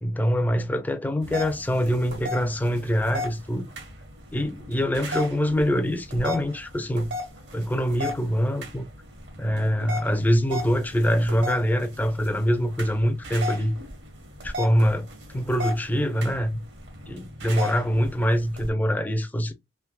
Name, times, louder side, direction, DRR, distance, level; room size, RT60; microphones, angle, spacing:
voice 1, 0.0-3.7 4.3-7.1 7.5-8.9 9.4-13.8 14.4-15.1 15.3-16.6 17.1-19.5, equal, 10° left, 0.3 m, -24 dB
sound 1, 1.2-18.7, left 1 dB, 65° right, 1.0 m, -37 dB
3.4 x 2.7 x 2.2 m
head